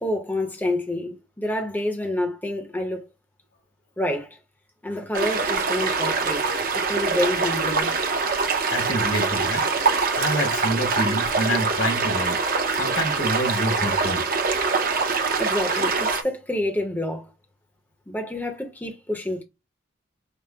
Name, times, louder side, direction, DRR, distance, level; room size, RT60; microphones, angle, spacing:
voice 1, 0.0-3.1 4.0-4.4 4.8-8.0 15.4-17.3 18.1-19.4, left 1 dB, 10° left, 0.7 m, -28 dB
sound 1, 5.1-16.2, right 4 dB, 45° right, 0.6 m, -24 dB
voice 2, 8.7-9.6 10.2-12.4 12.7-14.2 15.7-15.8, equal, 75° left, 1.6 m, -27 dB
5.1 x 2.0 x 3.2 m
head